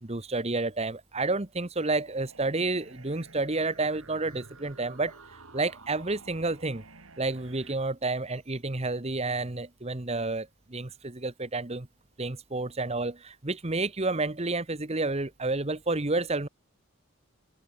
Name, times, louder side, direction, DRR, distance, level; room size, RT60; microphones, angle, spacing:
voice 1, 0.0-5.2 5.5-6.8 7.2-11.9 12.2-16.5, right 3 dB, 30° right, 1.2 m, -30 dB
sound 1, 1.8-7.8, right 3 dB, 80° right, 4.2 m, -51 dB
open air
head